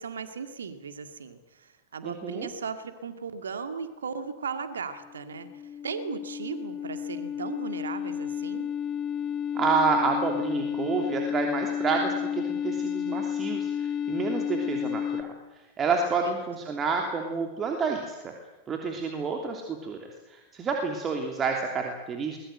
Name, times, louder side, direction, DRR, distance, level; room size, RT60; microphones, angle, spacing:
voice 1, 0.0-8.7 16.0-16.1, right 5 dB, 70° right, 9 dB, 2.1 m, -37 dB
voice 2, 2.0-2.5 9.5-12.1 12.5-15.3 15.8-18.3 18.7-22.4, right 4 dB, 25° right, 2 dB, 3.0 m, -29 dB
sound 1, 5.0-15.2, left 8 dB, 25° left, 2.1 m, -31 dB
22.5 x 20.5 x 7.8 m, 1.1 s
figure-of-eight pair, 90°, 0 cm